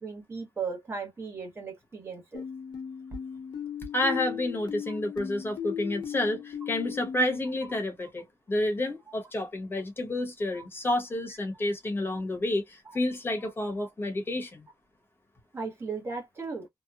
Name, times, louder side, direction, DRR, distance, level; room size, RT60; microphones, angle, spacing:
voice 1, 0.0-2.4 12.9-13.0 15.5-16.7, right 5 dB, 30° right, 1.0 m, -36 dB
sound 1, 2.3-7.4, left 8 dB, 70° left, 1.0 m, -37 dB
voice 2, 3.9-14.6, left 1 dB, 30° left, 1.0 m, -30 dB
2.9 x 2.1 x 2.3 m
wide cardioid pair, 125°, 8 cm